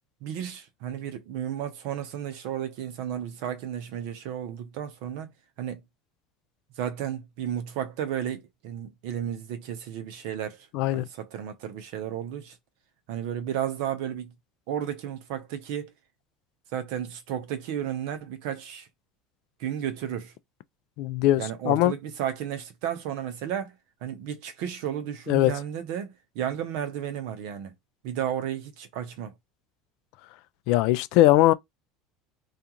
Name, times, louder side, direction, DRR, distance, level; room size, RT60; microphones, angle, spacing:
voice 1, 0.2-5.3 5.6-5.8 6.8-10.7 10.9-12.6 13.1-14.3 14.7-15.9 16.7-18.9 19.6-20.3 21.4-23.7 24.0-27.7 28.0-29.3, right 10 dB, 70° right, 0.7 m, -33 dB
voice 2, 10.7-11.1 21.0-21.9 25.3-25.5 30.7-31.5, left 15 dB, 70° left, 0.3 m, -20 dB
2.4 x 2.4 x 2.8 m
supercardioid pair, 95°, 0 cm